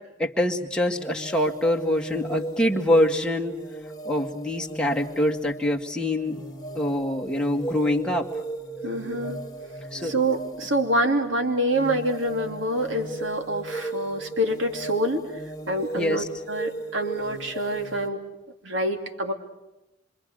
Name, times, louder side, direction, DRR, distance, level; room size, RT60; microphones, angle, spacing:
voice 1, 0.2-3.5 4.1-6.4 6.7-8.3 9.9-10.1 16.0-16.3, left 1 dB, 5° left, 0 dB, 1.9 m, -24 dB
sound 1, 0.9-18.1, right 2 dB, 20° left, 1.8 m, -37 dB
voice 2, 8.8-9.4 10.0-15.2 15.7-18.2 18.6-19.3, right 1 dB, 80° right, 5 dB, 2.9 m, -26 dB
26.5 x 25.5 x 6.5 m, 0.95 s
head